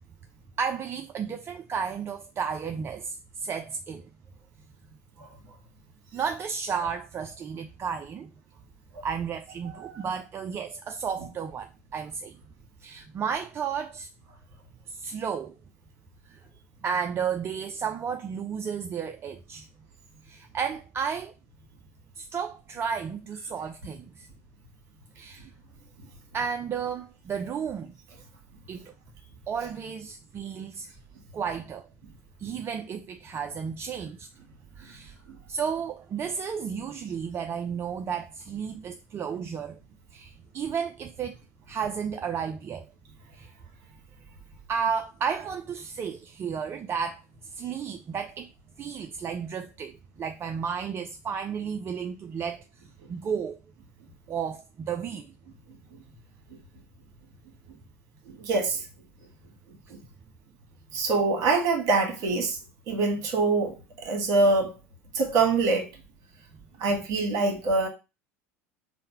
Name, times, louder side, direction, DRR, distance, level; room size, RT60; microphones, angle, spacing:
voice 1, 0.6-4.1 6.1-8.3 9.0-12.4 12.8-14.1 14.9-15.6 16.3-16.4 16.8-19.7 20.2-21.3 22.2-24.3 25.1-25.5 26.3-27.9 28.7-28.9 29.5-30.9 31.3-31.9 32.4-34.3 34.8-35.1 35.5-39.8 40.1-41.4 41.7-42.9 43.3-43.5 44.7-48.5 48.8-52.6 53.1-53.6 54.3-55.3, right 6 dB, 30° right, 0.4 m, -33 dB
voice 2, 9.6-10.0 35.3-35.4 58.3-58.8 59.9-60.0 60.9-62.6 62.9-64.7 65.1-65.9 66.8-67.9, right 3 dB, 55° right, 1.3 m, -25 dB
3.8 x 2.1 x 4.3 m
hypercardioid pair, 80°, 8 cm